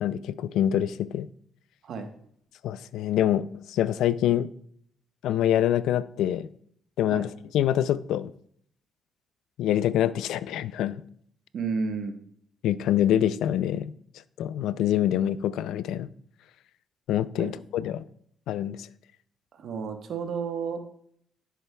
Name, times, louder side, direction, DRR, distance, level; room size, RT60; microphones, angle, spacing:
voice 1, 0.0-1.3 2.6-4.5 5.2-6.5 7.0-7.3 7.5-8.3 9.6-11.0 12.6-13.9 14.4-16.1 17.1-18.0 18.5-18.9, left 11 dB, 85° left, 16 dB, 0.3 m, -25 dB
voice 2, 11.5-12.2 17.4-17.5 19.5-20.8, right 5 dB, 65° right, 6 dB, 1.1 m, -31 dB
10.0 x 7.5 x 2.3 m, 0.65 s
cardioid pair, 90°, 0 cm